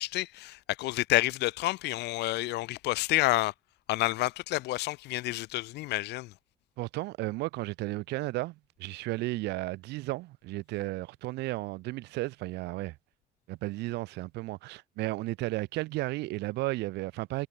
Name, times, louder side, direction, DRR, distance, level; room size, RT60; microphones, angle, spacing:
voice 1, 0.0-3.5 3.9-6.3, left 18 dB, 85° left, 1.5 m, -29 dB
voice 2, 6.8-13.0 13.5-17.5, right 19 dB, 90° right, 3.3 m, -34 dB
cardioid pair, 110°, 17 cm